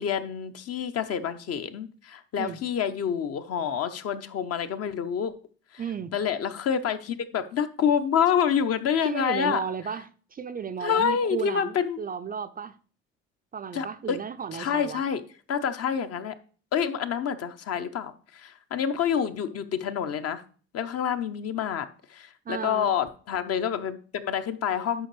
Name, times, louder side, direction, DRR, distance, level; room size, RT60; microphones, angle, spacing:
voice 1, 0.0-5.3 6.1-9.6 10.8-12.0 13.7-14.2 14.5-15.2 15.5-16.3 16.7-20.4 20.7-25.1, left 8 dB, 40° left, 0.9 m, -27 dB
voice 2, 5.8-6.1 9.0-12.8 13.5-15.0 22.5-22.9, right 7 dB, 25° right, 0.5 m, -34 dB
11.5 x 5.8 x 3.2 m
figure-of-eight pair, 55°, 36 cm